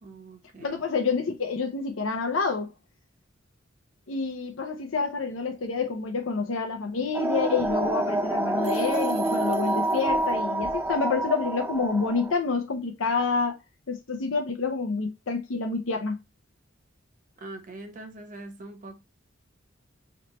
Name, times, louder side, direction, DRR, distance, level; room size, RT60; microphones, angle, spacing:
voice 1, 0.0-0.8 17.4-19.0, right 2 dB, 40° right, 1.0 m, -43 dB
voice 2, 0.6-2.7 4.1-13.6 13.9-16.2, left 4 dB, 80° left, 0.6 m, -28 dB
sound 1, 7.1-12.3, right 1 dB, 10° right, 0.4 m, -27 dB
sound 2, 8.6-10.3, right 7 dB, 80° right, 0.8 m, -45 dB
3.2 x 3.1 x 3.9 m
head